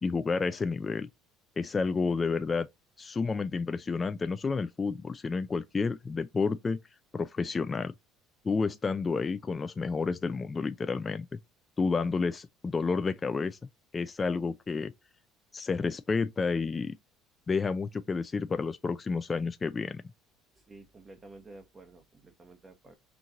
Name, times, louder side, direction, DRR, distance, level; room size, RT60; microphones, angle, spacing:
voice 1, 0.0-1.1 1.6-2.7 3.0-6.8 7.1-7.9 8.4-11.4 11.8-13.6 13.9-14.9 15.5-17.0 17.5-20.0, left 4 dB, 25° left, 0.3 m, -30 dB
voice 2, 20.5-22.9, right 2 dB, 25° right, 0.9 m, -51 dB
4.5 x 2.5 x 3.8 m
cardioid pair, 110°, 0 cm